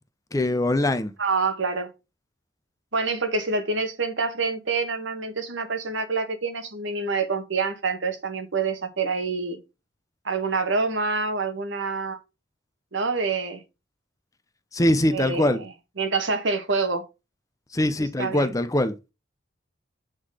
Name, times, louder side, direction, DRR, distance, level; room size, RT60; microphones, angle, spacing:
voice 1, 0.3-1.1 14.7-15.6 17.7-18.9, left 1 dB, 15° left, 0.6 m, -22 dB
voice 2, 1.2-1.9 2.9-9.6 10.2-12.2 12.9-13.6 15.1-15.7 16.0-17.0 18.2-18.5, right 4 dB, 75° right, 1.3 m, -26 dB
8.1 x 3.9 x 4.9 m
head